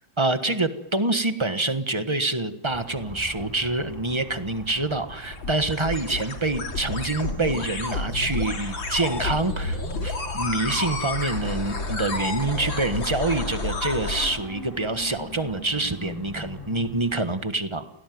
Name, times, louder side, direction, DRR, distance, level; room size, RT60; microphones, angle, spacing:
voice 1, 0.2-17.9, right 2 dB, 15° right, 8 dB, 1.1 m, -26 dB
sound 1, 2.7-17.4, equal, 10° left, 6.5 m, -42 dB
sound 2, 4.5-14.4, left 3 dB, 70° left, 3.6 m, -30 dB
29.5 x 18.0 x 9.4 m, 0.96 s
omnidirectional pair, 2.2 m